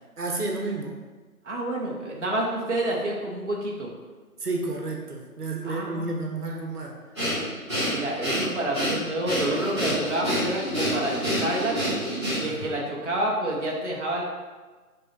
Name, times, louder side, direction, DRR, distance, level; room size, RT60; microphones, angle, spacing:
voice 1, 0.2-1.0 4.4-6.9 12.4-12.8, right 3 dB, 85° right, 0 dB, 1.3 m, -31 dB
voice 2, 1.4-3.9 5.6-6.1 7.9-11.8 12.3-14.2, right 1 dB, 50° right, -4 dB, 1.3 m, -28 dB
Breathing, 7.1-12.7, equal, 20° right, 1.9 m, -28 dB
6.0 x 3.1 x 5.2 m, 1.3 s
figure-of-eight pair, 180°, 45 cm